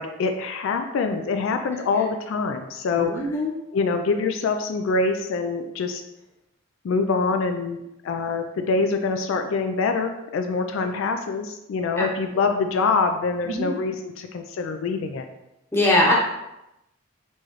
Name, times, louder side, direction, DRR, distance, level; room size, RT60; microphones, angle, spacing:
voice 1, 0.0-3.4 3.7-6.0 6.8-15.3, left 4 dB, 70° left, 6 dB, 0.3 m, -25 dB
voice 2, 3.1-3.5 12.0-12.1 13.4-13.7 15.7-16.1, left 1 dB, 10° left, -4 dB, 0.8 m, -21 dB
4.5 x 3.1 x 3.0 m, 0.91 s
head